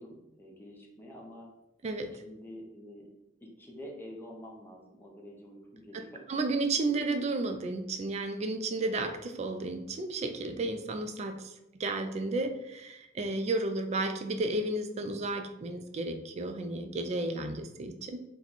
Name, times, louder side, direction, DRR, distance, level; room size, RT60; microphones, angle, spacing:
voice 1, 0.0-1.5 2.2-3.1 3.4-6.1 6.9-7.0, equal, 10° left, -1 dB, 0.6 m, -47 dB
voice 2, 1.8-2.2 6.3-18.2, right 2 dB, 35° right, 7 dB, 0.3 m, -33 dB
2.9 x 2.2 x 3.9 m, 0.90 s
head